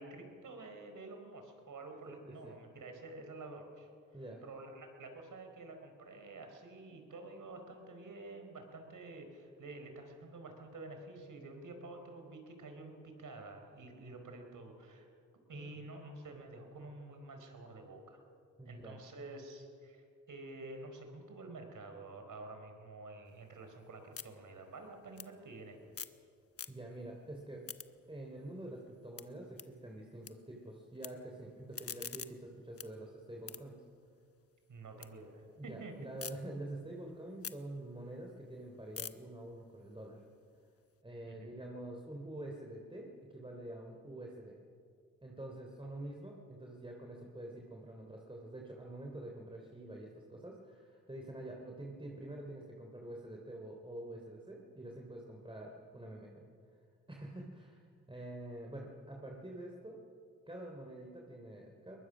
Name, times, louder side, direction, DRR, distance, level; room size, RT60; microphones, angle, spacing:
voice 1, 0.0-3.9 4.4-15.1 15.5-18.2 18.7-25.9 34.7-36.3 41.3-41.5, right 2 dB, 55° right, 5 dB, 4.5 m, -49 dB
voice 2, 15.5-15.8 18.6-19.0 26.7-27.7 28.1-33.8 35.6-40.2 41.0-44.6 45.2-56.5 57.1-60.0 60.5-62.0, right 1 dB, 15° right, 0 dB, 3.3 m, -47 dB
sound 1, 23.3-26.2 26.5-27.1 27.4-30.3 30.6-31.1 31.5-35.1 35.5-36.3 36.8-40.9, left 7 dB, 40° left, 1.1 m, -49 dB
22.0 x 20.0 x 6.2 m, 2.3 s
supercardioid pair, 50°, 37 cm